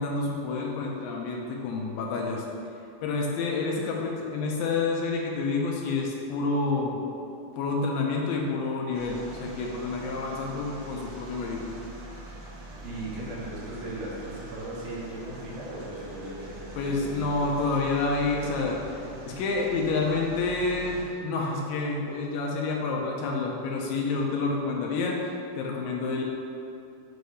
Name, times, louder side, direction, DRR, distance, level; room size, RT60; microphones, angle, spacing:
voice 1, 0.0-2.5 3.0-7.0 7.5-11.8 16.8-18.8 19.3-25.2 25.6-26.2, left 3 dB, 80° left, -1 dB, 2.2 m, -28 dB
sound 1, 8.9-21.0, right 1 dB, 90° right, 3.0 m, -43 dB
voice 2, 12.8-17.2, right 1 dB, 70° right, -6 dB, 2.6 m, -37 dB
7.7 x 2.7 x 4.8 m, 2.6 s
omnidirectional pair, 4.2 m